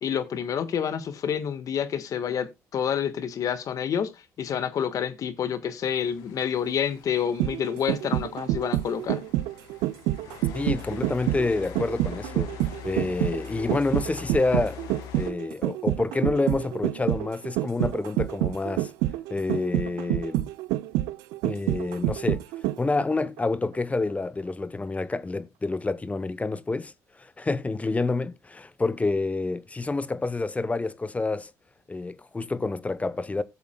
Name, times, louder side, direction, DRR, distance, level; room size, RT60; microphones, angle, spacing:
voice 1, 0.0-9.2, left 8 dB, 60° left, 1.4 m, -28 dB
sound 1, 5.8-15.3, left 8 dB, 85° left, 1.6 m, -43 dB
sound 2, 7.2-23.0 23.4-23.5, right 16 dB, 85° right, 0.5 m, -28 dB
voice 2, 10.5-12.5 12.8-14.8 15.2-18.9 19.3-20.5 21.4-22.4 22.8-31.5 31.9-33.4, left 3 dB, 20° left, 0.8 m, -28 dB
16.5 x 7.1 x 2.2 m
supercardioid pair, 70°, 7 cm